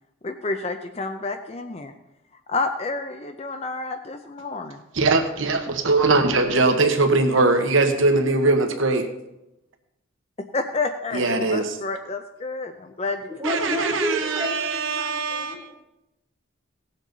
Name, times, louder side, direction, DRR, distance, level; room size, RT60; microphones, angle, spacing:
voice 1, 0.2-1.9 2.5-4.8 10.5-13.2, left 3 dB, 30° left, 7 dB, 0.5 m, -29 dB
voice 2, 4.9-9.1 11.1-11.8 13.4-15.7, right 3 dB, 65° right, 5 dB, 1.1 m, -21 dB
voice 3, 13.3-15.7, equal, 5° right, -5 dB, 3.5 m, -30 dB
18.0 x 7.3 x 4.0 m, 0.90 s
head